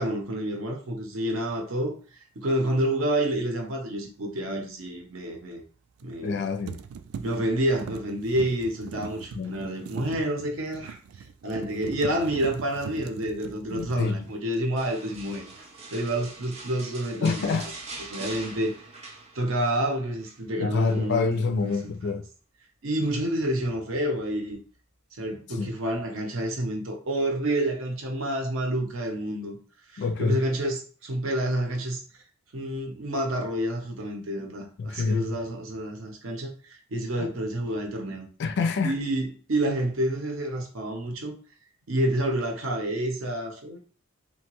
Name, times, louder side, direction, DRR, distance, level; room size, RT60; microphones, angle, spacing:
voice 1, 0.0-1.9 2.4-5.6 6.0-6.4 7.2-11.0 11.4-17.7 18.1-18.7 19.3-21.3 21.6-22.1 22.8-24.6 25.1-29.6 29.9-32.0 32.5-38.3 38.8-41.4 41.9-43.8, right 1 dB, 70° right, 0.7 m, -29 dB
sound 1, 2.7-2.9 6.0-6.4 6.7-14.9 15.2-15.6, right 6 dB, 85° right, 0.3 m, -41 dB
voice 2, 6.2-6.8 9.3-9.6 13.7-14.2 17.2-17.7 20.6-22.2 25.6-25.7 30.0-30.4 34.8-35.4 37.2-37.3 38.4-38.9, left 4 dB, 55° left, 0.4 m, -26 dB
sound 2, 14.8-19.8 20.0-20.4 20.8-21.9 23.0-23.5 24.0-24.1, right 3 dB, 30° right, 0.5 m, -43 dB
2.8 x 2.2 x 2.9 m
head